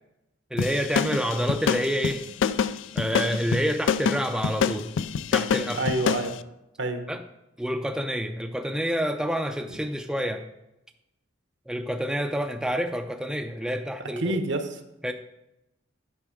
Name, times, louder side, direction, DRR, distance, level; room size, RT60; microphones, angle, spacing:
voice 1, 0.5-2.2 2.9-4.9 5.3-5.8 7.1-7.2 7.6-10.4 11.7-14.4 15.0-15.1, equal, 5° right, 5 dB, 0.4 m, -28 dB
sound 1, 0.6-6.3, left 7 dB, 80° left, 0.4 m, -26 dB
voice 2, 5.7-6.3 6.8-7.0 14.2-14.7, right 2 dB, 65° right, 7 dB, 1.0 m, -27 dB
9.8 x 6.1 x 5.0 m, 0.90 s
head